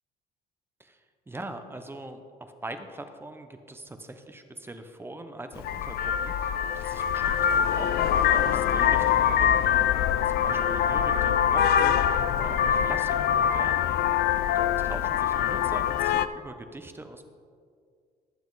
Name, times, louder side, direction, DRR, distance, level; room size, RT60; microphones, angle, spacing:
voice 1, 1.3-9.7 10.2-13.9 14.5-17.3, right 1 dB, 15° right, 7 dB, 1.0 m, -42 dB
Vehicle horn car horn honking, 5.6-16.3, left 9 dB, 65° left, 0.5 m, -24 dB
19.5 x 7.2 x 4.1 m, 2.2 s
cardioid pair, 110°, 17 cm